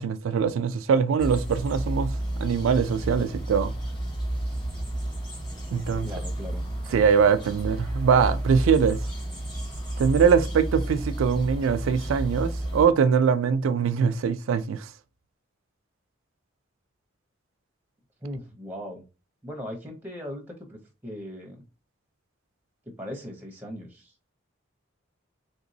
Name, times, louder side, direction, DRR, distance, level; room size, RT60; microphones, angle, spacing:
voice 1, 0.0-2.1 2.4-3.7 5.7-6.1 6.9-9.0 10.0-14.9, right 6 dB, 85° right, 0.3 m, -22 dB
sound 1, 1.2-12.9, right 1 dB, 20° left, 1.6 m, -31 dB
voice 2, 6.0-6.7 18.2-19.0 19.4-21.6 22.9-24.1, equal, 10° right, 0.6 m, -38 dB
3.2 x 2.9 x 2.6 m
head